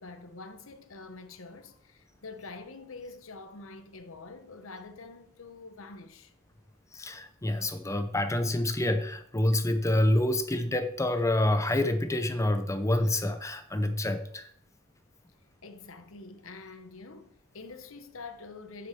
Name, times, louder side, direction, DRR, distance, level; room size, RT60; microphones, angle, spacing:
voice 1, 0.0-6.3 15.6-18.9, left 3 dB, 85° left, 1.1 m, -46 dB
voice 2, 6.9-14.5, left 1 dB, 15° left, 0.7 m, -27 dB
7.9 x 6.2 x 6.8 m
head